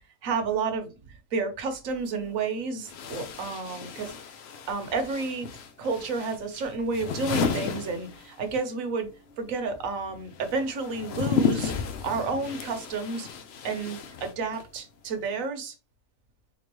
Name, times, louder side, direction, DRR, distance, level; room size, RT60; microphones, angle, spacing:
voice 1, 0.2-4.1 4.7-5.5 5.8-9.1 9.4-11.7 12.0-13.3 13.6-15.7, right 4 dB, 65° right, 1.1 m, -31 dB
sound 1, 1.9-2.0 2.8-8.7 8.9-14.8, left 6 dB, 65° left, 0.6 m, -33 dB
3.7 x 3.0 x 3.0 m
omnidirectional pair, 1.6 m